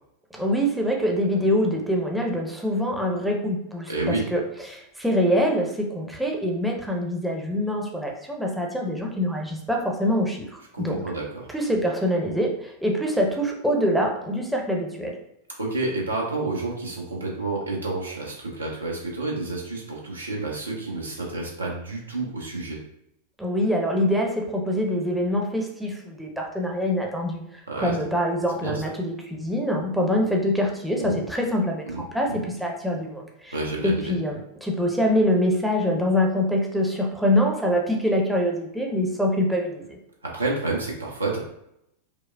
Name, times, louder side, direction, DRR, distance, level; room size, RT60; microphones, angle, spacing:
voice 1, 0.3-11.0 11.5-15.2 23.4-33.6 33.8-40.0, equal, 5° right, 0 dB, 0.7 m, -25 dB
voice 2, 3.9-4.3 10.7-11.5 15.6-22.8 27.7-28.0 28.6-28.8 30.9-31.2 31.9-32.4 33.5-34.1 40.2-41.4, right 2 dB, 80° right, -2 dB, 0.9 m, -29 dB
5.0 x 2.0 x 2.3 m, 0.77 s
figure-of-eight pair, 90°, 0 cm